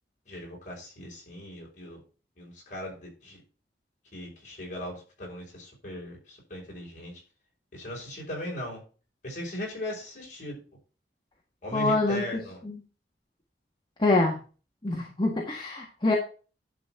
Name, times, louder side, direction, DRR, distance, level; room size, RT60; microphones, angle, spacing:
voice 1, 0.3-2.0 2.4-3.4 4.1-7.1 7.7-8.8 9.2-10.5 11.6-12.6, equal, 45° left, -3 dB, 5.8 m, -38 dB
voice 2, 11.7-12.2 12.6-12.8 14.0-14.4 14.8-16.1, left 2 dB, 25° left, -1 dB, 1.7 m, -25 dB
11.0 x 4.2 x 5.9 m, 0.35 s
head